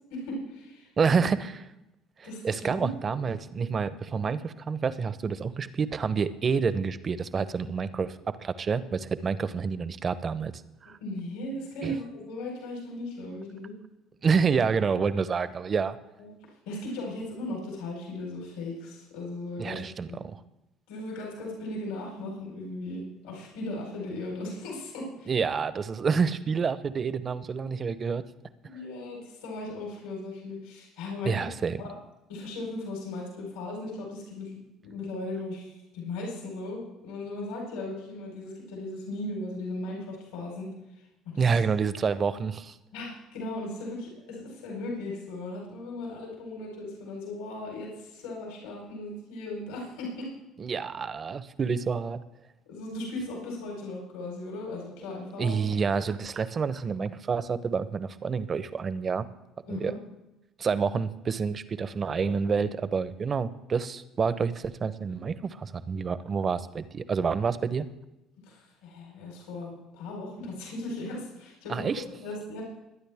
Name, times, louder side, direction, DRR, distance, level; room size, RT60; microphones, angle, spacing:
voice 1, 0.1-1.2 2.2-3.2 11.0-13.7 16.2-16.3 16.7-19.8 20.1-20.2 20.9-25.3 28.6-31.5 31.8-31.9 32.3-34.6 34.8-40.7 41.2-41.6 42.9-50.3 52.7-55.7 59.7-60.0 68.5-71.9 72.2-72.6, left 2 dB, 75° left, -2 dB, 4.6 m, -37 dB
voice 2, 1.0-1.6 2.4-10.5 10.8-11.0 11.8-11.9 14.2-16.0 19.6-20.4 25.3-28.2 31.2-31.8 41.4-42.7 50.6-52.2 55.4-59.3 59.7-59.9 60.6-67.9 71.7-72.0, right 5 dB, 40° right, 14 dB, 1.0 m, -28 dB
22.5 x 9.8 x 3.6 m, 0.94 s
hypercardioid pair, 60°, 0 cm